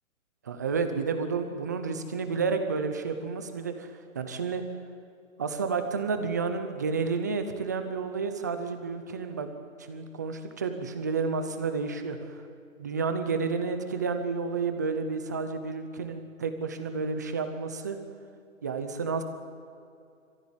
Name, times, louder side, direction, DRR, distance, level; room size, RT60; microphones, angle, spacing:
voice 1, 0.4-4.6 5.4-9.5 9.9-12.4 12.8-18.0 18.6-19.2, right 5 dB, 15° right, 8 dB, 0.6 m, -31 dB
24.5 x 15.0 x 9.8 m, 2.4 s
hypercardioid pair, 165°, 42 cm